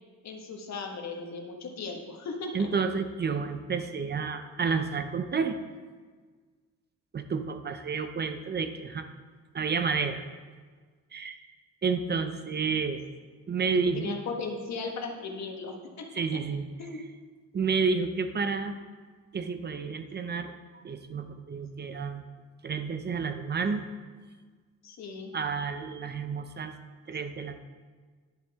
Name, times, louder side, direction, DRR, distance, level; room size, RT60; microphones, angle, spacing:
voice 1, 0.2-2.7 13.9-16.1 16.8-17.0 24.8-25.3, left 4 dB, 65° left, 2 dB, 1.5 m, -37 dB
voice 2, 2.5-5.6 7.1-9.1 9.5-10.2 11.1-11.4 11.8-13.0 13.5-14.2 16.1-16.7 17.5-18.8 19.3-22.2 22.6-23.8 25.3-26.7 27.1-27.6, right 5 dB, 35° right, 8 dB, 0.6 m, -30 dB
10.5 x 7.7 x 3.6 m, 1.5 s
cardioid pair, 90°, 30 cm